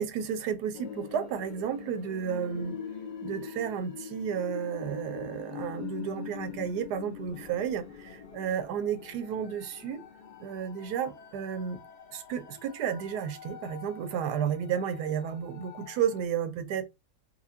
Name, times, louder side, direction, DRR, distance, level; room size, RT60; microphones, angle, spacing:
voice 1, 0.0-2.8 3.2-10.0 10.4-11.8 12.1-16.8, right 8 dB, 85° right, 1.2 m, -32 dB
sound 1, 0.7-16.3, left 7 dB, 65° left, 0.4 m, -44 dB
4.1 x 2.3 x 2.7 m
omnidirectional pair, 1.7 m